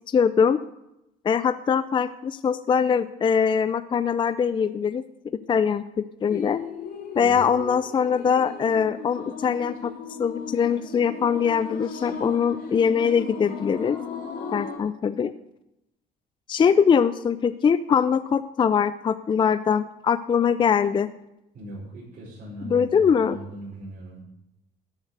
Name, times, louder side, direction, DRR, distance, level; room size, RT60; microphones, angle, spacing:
voice 1, 0.1-0.6 1.2-5.0 5.5-6.6 7.2-9.9 10.2-14.0 14.5-15.3 16.5-21.1 22.6-23.4, left 7 dB, 30° left, 13 dB, 0.4 m, -22 dB
sound 1, 6.3-14.8, left 5 dB, 60° left, 3.2 m, -36 dB
voice 2, 21.5-24.2, right 1 dB, 55° right, -7 dB, 4.9 m, -39 dB
13.0 x 7.0 x 6.7 m, 0.89 s
cardioid pair, 110°, 17 cm